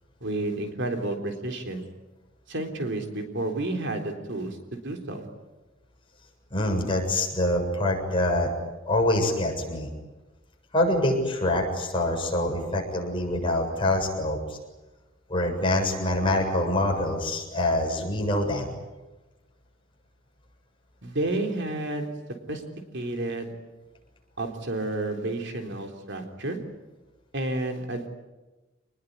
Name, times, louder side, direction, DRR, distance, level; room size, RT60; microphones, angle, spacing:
voice 1, 0.2-1.8 2.5-5.3 21.0-22.1 22.5-22.6 22.9-23.5 24.4-26.6 27.3-28.1, right 2 dB, 65° right, 4 dB, 3.8 m, -30 dB
voice 2, 6.5-8.5 8.8-9.9 10.7-14.6 15.3-18.7, left 1 dB, 25° left, 1 dB, 7.2 m, -25 dB
27.5 x 20.5 x 9.7 m, 1.1 s
head